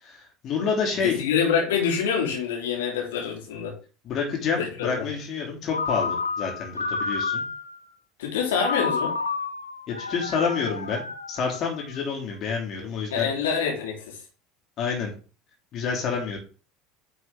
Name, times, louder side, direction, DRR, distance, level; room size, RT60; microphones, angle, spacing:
voice 1, 0.0-1.2 4.0-7.4 9.9-13.3 14.8-15.1 15.7-16.4, left 5 dB, 45° left, 0 dB, 3.0 m, -28 dB
voice 2, 1.0-3.7 4.6-5.1 8.2-9.1 13.1-14.2, left 7 dB, 70° left, 0 dB, 2.9 m, -26 dB
Ringtone, 5.7-7.8 8.6-12.0, left 4 dB, 85° left, 0.6 m, -30 dB
9.9 x 5.4 x 3.7 m, 0.36 s
figure-of-eight pair, 70°, 0 cm